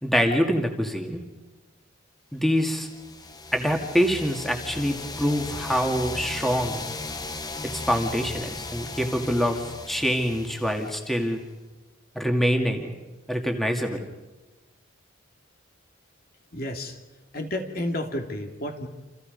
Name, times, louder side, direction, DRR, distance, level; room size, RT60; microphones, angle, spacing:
voice 1, 0.0-1.2 2.3-2.9 3.5-6.8 7.7-11.4 12.1-12.9 13.3-14.0, equal, ahead, 2 dB, 2.2 m, -25 dB
sound 1, 2.7-11.4, left 3 dB, 20° left, 1.2 m, -37 dB
voice 2, 16.5-17.0 17.3-18.9, left 1 dB, 45° left, 4 dB, 2.6 m, -31 dB
29.5 x 28.0 x 5.4 m, 1.1 s
head